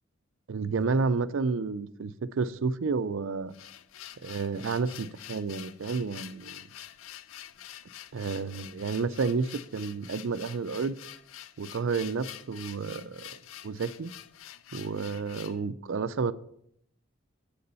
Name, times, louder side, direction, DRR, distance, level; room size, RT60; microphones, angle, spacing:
voice 1, 0.5-3.5 4.2-6.7 8.1-11.0 11.6-13.3 13.6-14.1 14.7-16.3, right 4 dB, 75° right, 0.5 m, -30 dB
sound 1, 3.3-15.6, left 11 dB, 85° left, 0.5 m, -47 dB
7.8 x 6.7 x 5.5 m
head